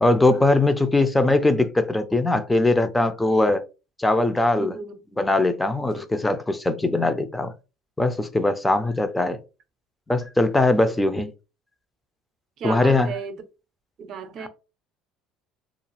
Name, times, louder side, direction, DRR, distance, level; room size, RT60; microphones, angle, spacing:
voice 1, 0.0-3.6 4.0-4.7 5.2-7.5 8.0-9.4 10.1-11.3 12.6-13.1 14.4-14.5, left 2 dB, 10° left, 0.5 m, -21 dB
voice 2, 4.5-4.9 5.8-6.0 12.6-13.4 14.0-14.5, right 5 dB, 55° right, 0.7 m, -34 dB
2.5 x 2.3 x 3.1 m
hypercardioid pair, 65°, 0 cm